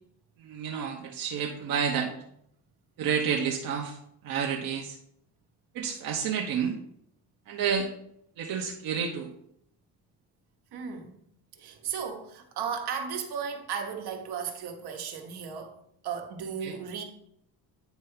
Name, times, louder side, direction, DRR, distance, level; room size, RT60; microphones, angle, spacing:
voice 1, 0.4-2.1 3.0-4.0 4.2-5.0 5.7-6.8 7.5-7.9 8.4-9.3 16.6-16.8, right 7 dB, 60° right, 1.0 m, -30 dB
voice 2, 10.7-11.2 11.5-15.7 16.0-17.0, right 7 dB, 75° right, 1.4 m, -35 dB
9.3 x 3.4 x 5.7 m
cardioid pair, 145°, 39 cm